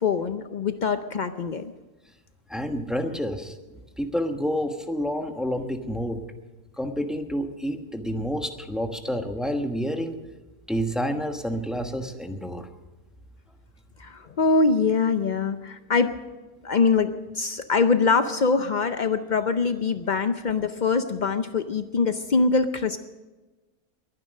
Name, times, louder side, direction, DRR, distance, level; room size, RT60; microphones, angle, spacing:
voice 1, 0.0-1.7 14.0-16.1 16.6-23.0, left 4 dB, 90° left, 9 dB, 0.4 m, -23 dB
voice 2, 2.5-3.5 4.0-6.2 6.8-10.2 10.7-12.7 20.1-20.2, equal, ahead, 5 dB, 1.0 m, -29 dB
22.0 x 9.8 x 6.4 m, 1.2 s
omnidirectional pair, 1.7 m